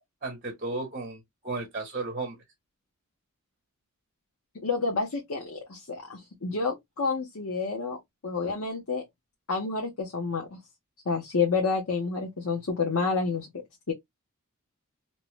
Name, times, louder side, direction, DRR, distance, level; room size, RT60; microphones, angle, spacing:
voice 1, 0.2-2.4, right 3 dB, 35° right, 0.8 m, -34 dB
voice 2, 4.6-9.0 9.5-10.6 11.1-13.5 13.9-14.0, left 4 dB, 75° left, 0.8 m, -29 dB
2.7 x 2.1 x 3.0 m
head